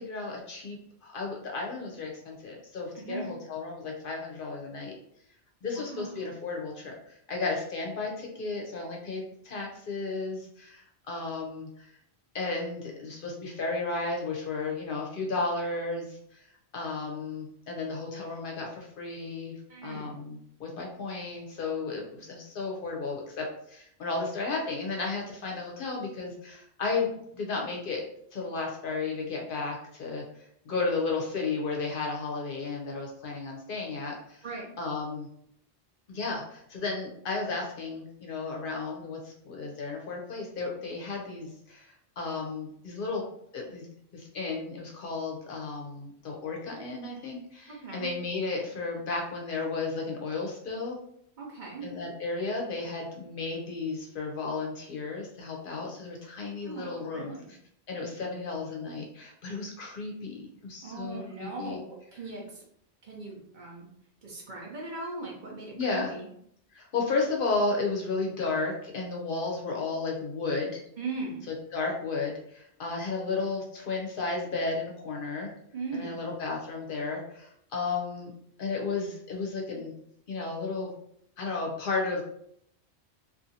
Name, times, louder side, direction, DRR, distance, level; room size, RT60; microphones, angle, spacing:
voice 1, 0.0-4.9 5.6-11.9 12.3-16.4 16.7-34.4 34.8-35.3 36.1-41.9 42.2-43.3 43.5-43.9 44.1-51.0 51.8-57.6 57.9-61.8 65.7-66.1 66.7-70.8 71.5-75.5 75.9-78.3 78.6-79.9 80.3-80.9 81.4-82.2, left 3 dB, 60° left, 0 dB, 0.7 m, -33 dB
voice 2, 2.9-3.3 5.6-6.3 19.7-20.2 34.4-34.7 47.7-48.1 51.4-51.9 56.6-57.5 60.8-62.6 63.0-63.9 64.2-66.3 71.0-71.5 75.7-76.2, right 3 dB, 55° right, -2 dB, 0.7 m, -39 dB
2.6 x 2.4 x 2.6 m, 0.70 s
omnidirectional pair, 1.1 m